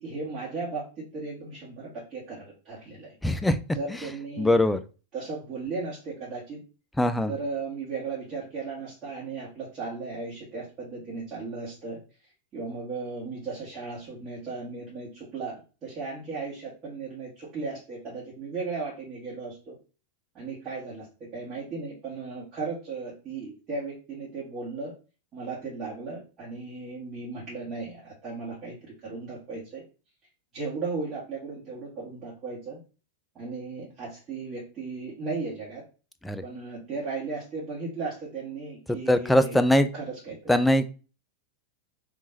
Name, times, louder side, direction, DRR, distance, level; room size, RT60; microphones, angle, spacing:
voice 1, 0.0-3.1 3.7-4.6 5.1-6.6 7.3-12.0 12.5-19.8 20.3-24.9 25.3-29.8 30.5-32.8 33.3-35.8 36.4-39.6 39.9-40.6, right 4 dB, 30° right, -8 dB, 1.5 m, -36 dB
voice 2, 3.2-3.6 4.4-4.8 7.0-7.3 36.2-36.4 39.1-39.9 40.5-40.9, left 1 dB, 5° left, 10 dB, 0.3 m, -21 dB
3.6 x 3.0 x 2.7 m, 0.34 s
figure-of-eight pair, 90°, 0 cm